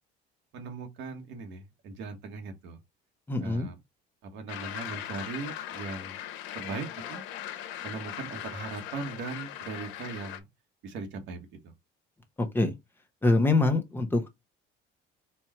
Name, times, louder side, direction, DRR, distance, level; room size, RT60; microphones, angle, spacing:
voice 1, 0.5-2.8 3.4-3.8 4.2-6.2 6.5-7.2 7.8-10.5 10.8-11.5, right 4 dB, 70° right, 1.3 m, -39 dB
voice 2, 3.3-3.7 12.4-12.7 13.2-14.3, left 2 dB, 10° left, 0.8 m, -24 dB
sound 1, 4.5-10.4, left 11 dB, 85° left, 0.8 m, -39 dB
4.4 x 2.4 x 4.3 m
cardioid pair, 140°, 19 cm